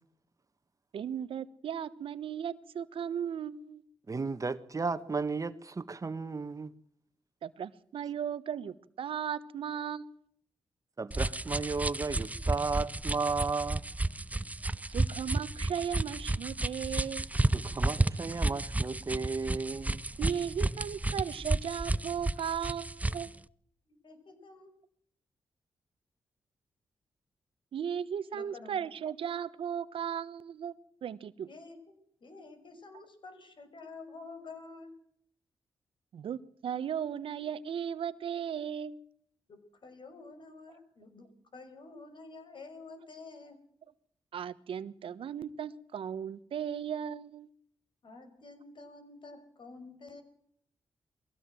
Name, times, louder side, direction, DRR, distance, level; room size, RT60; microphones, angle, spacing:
voice 1, 0.9-3.8 7.4-10.2 14.9-17.3 20.2-23.3 27.7-30.7 31.0-31.5 36.1-39.0 44.3-47.5, right 8 dB, 75° right, 1.2 m, -36 dB
voice 2, 4.1-6.7 11.0-13.8 17.5-20.0, right 4 dB, 35° right, 1.5 m, -34 dB
sound 1, 11.1-23.3, right 2 dB, 15° right, 0.8 m, -32 dB
voice 3, 23.9-24.7 28.3-28.8 31.5-34.9 39.5-43.6 48.0-50.2, left 3 dB, 65° left, 5.7 m, -49 dB
21.5 x 16.0 x 7.8 m
cardioid pair, 60°, 9 cm